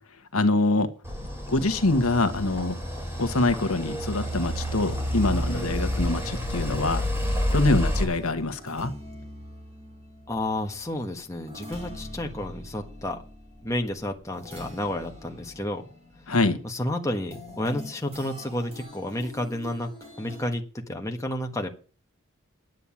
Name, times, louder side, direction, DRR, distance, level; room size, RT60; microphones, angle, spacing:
voice 1, 0.3-0.9 1.5-2.8 3.2-7.1 7.5-8.9 16.3-16.6, left 2 dB, 70° left, 1.3 m, -24 dB
sound 1, 1.0-8.0, equal, 10° right, 3.9 m, -29 dB
sound 2, 7.9-20.5, left 1 dB, 30° right, 3.7 m, -44 dB
voice 2, 10.3-13.2 13.6-15.8 16.6-19.9 20.2-21.7, left 1 dB, 15° left, 1.4 m, -31 dB
9.8 x 9.3 x 7.2 m
head